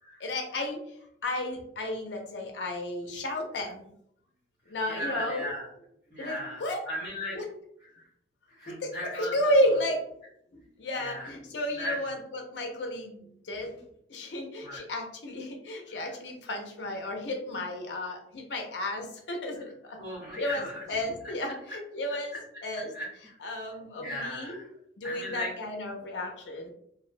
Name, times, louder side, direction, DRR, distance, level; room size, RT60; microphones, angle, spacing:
voice 1, 0.2-0.8 1.2-3.9 4.7-5.5 6.2-6.8 7.3-7.4 8.8-10.2 10.5-13.8 14.1-20.0 20.4-20.6 20.9-22.4 22.6-22.9 23.4-24.6 25.0-26.7, left 1 dB, 90° left, 2 dB, 0.5 m, -32 dB
voice 2, 4.9-5.7 6.1-7.4 7.8-8.0 8.5-9.4 11.0-11.3 11.8-12.0 14.6-14.8 15.9-16.1 19.5-19.7 20.0-20.8 22.3-22.4 22.9-23.4 24.0-24.7 25.0-25.5, left 1 dB, 20° right, -9 dB, 0.7 m, -37 dB
2.5 x 2.1 x 2.4 m, 0.71 s
head